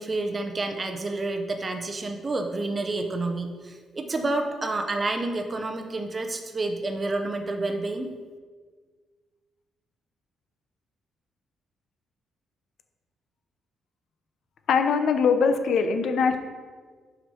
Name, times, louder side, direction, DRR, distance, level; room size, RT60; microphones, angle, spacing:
voice 1, 0.0-8.1, right 2 dB, 25° right, 5 dB, 0.7 m, -29 dB
voice 2, 14.7-16.4, left 5 dB, 60° left, 8 dB, 0.7 m, -22 dB
6.0 x 5.1 x 5.5 m, 1.5 s
cardioid pair, 150°, 0 cm